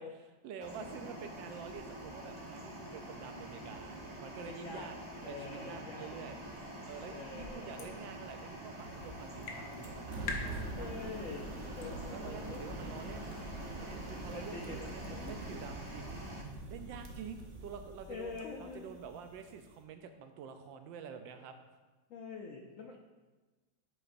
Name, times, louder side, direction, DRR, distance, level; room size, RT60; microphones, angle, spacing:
voice 1, 0.0-5.0 5.2-6.4 6.8-10.2 10.4-10.9 12.1-13.3 13.8-16.4 16.7-21.6 22.9-23.0, right 7 dB, 75° right, 7 dB, 1.3 m, -48 dB
sound 1, 0.6-16.4, right 1 dB, 30° right, 0.5 m, -47 dB
voice 2, 4.4-4.9 5.2-6.1 7.1-8.0 10.7-12.7 14.3-15.5 18.1-19.0 22.1-23.0, left 4 dB, 85° left, 1 dB, 0.7 m, -46 dB
sound 2, 6.3-12.1, left 3 dB, 55° left, 1.2 m, -47 dB
sound 3, 9.8-19.8, right 2 dB, 45° right, 1.0 m, -45 dB
7.9 x 7.6 x 2.6 m, 1.2 s
omnidirectional pair, 2.2 m